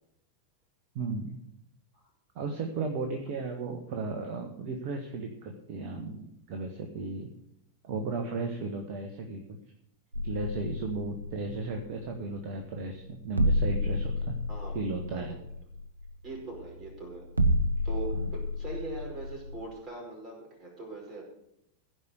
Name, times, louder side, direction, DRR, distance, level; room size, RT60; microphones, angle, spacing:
voice 1, 0.9-1.4 2.3-7.3 7.8-9.6 10.1-14.3 14.7-15.3 18.1-18.3, right 3 dB, 45° right, 4 dB, 1.4 m, -35 dB
sound 1, 10.1-19.7, equal, 80° right, 0.8 m, -31 dB
voice 2, 14.5-14.8 15.1-15.4 16.2-17.3 17.8-21.3, right 3 dB, 30° right, -1 dB, 4.9 m, -41 dB
15.5 x 5.3 x 8.1 m, 0.79 s
figure-of-eight pair, 90°, 0 cm